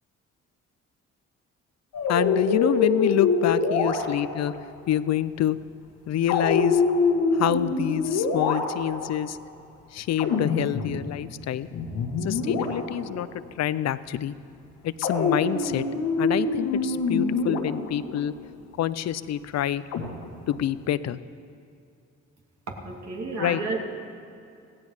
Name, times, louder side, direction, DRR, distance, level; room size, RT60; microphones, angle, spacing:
sound 1, 1.9-4.5 6.3-9.1 10.2-11.5 11.7-13.2 15.0-18.2 19.9-20.7, left 4 dB, 85° left, 1.8 m, -25 dB
voice 1, 2.1-4.5 4.9-5.6 6.1-6.8 7.3-9.4 9.9-11.7 12.2-13.3 13.6-14.3 14.8-15.8 16.2-18.3 18.8-19.8 20.5-21.2 23.4-23.6, left 11 dB, 60° left, 16 dB, 0.6 m, -27 dB
voice 2, 22.8-23.8, right 3 dB, 60° right, 0 dB, 2.9 m, -31 dB
16.5 x 16.0 x 5.0 m, 2.5 s
supercardioid pair, 65°, 30 cm